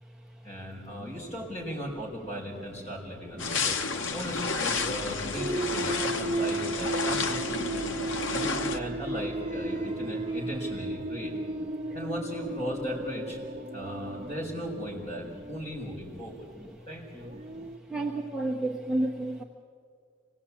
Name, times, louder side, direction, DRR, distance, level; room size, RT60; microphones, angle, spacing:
voice 1, 0.4-3.8 4.1-8.0 8.3-11.3 11.9-13.4 13.7-16.5 16.9-17.3, equal, 35° left, -2 dB, 5.4 m, -37 dB
sound 1, 3.4-8.8, left 4 dB, 75° left, 1.0 m, -31 dB
sound 2, 4.7-10.9, right 1 dB, 15° left, 3.2 m, -48 dB
sound 3, 5.4-15.7 17.1-17.8, right 2 dB, 30° right, 1.0 m, -35 dB
voice 2, 17.5-19.4, right 2 dB, 5° right, -1 dB, 1.0 m, -31 dB
26.0 x 18.5 x 8.6 m, 2.2 s
head